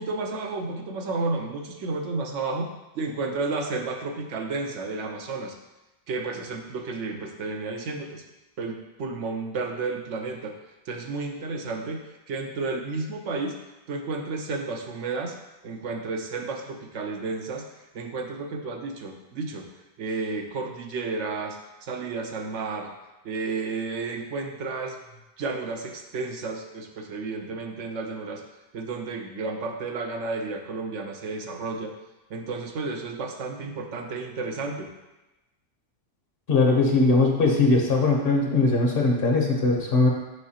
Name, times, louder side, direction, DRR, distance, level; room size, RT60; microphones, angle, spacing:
voice 1, 0.0-5.6 6.1-8.2 8.6-10.6 10.9-13.6 13.9-15.4 15.6-17.7 17.9-19.7 20.0-22.9 23.2-25.0 25.4-28.4 28.7-31.9 32.3-34.9, right 3 dB, 75° right, 3 dB, 1.0 m, -32 dB
voice 2, 36.5-40.1, left 3 dB, 50° left, 0 dB, 1.1 m, -20 dB
6.4 x 5.5 x 2.8 m, 1.0 s
omnidirectional pair, 1.2 m